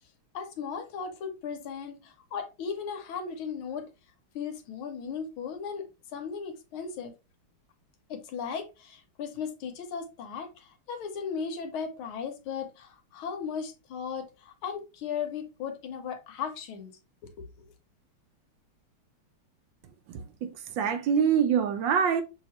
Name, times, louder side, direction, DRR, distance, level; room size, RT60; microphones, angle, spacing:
voice 1, 0.3-3.8 4.3-5.8 6.1-7.1 8.1-14.3 14.6-16.9, left 6 dB, 75° left, 1.7 m, -36 dB
voice 2, 20.1-22.2, right 7 dB, 70° right, 1.2 m, -25 dB
6.1 x 2.9 x 3.0 m
omnidirectional pair, 2.4 m